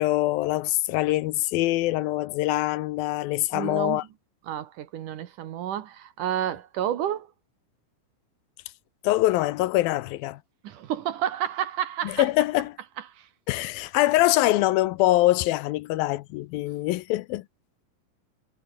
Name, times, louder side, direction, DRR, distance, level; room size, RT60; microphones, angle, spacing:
voice 1, 0.0-4.0 9.0-10.4 12.0-12.8 13.5-17.4, left 17 dB, 80° left, 2.4 m, -24 dB
voice 2, 3.5-4.0 4.5-7.3 10.6-12.3 13.1-13.3, right 10 dB, 65° right, 2.6 m, -30 dB
omnidirectional pair, 4.4 m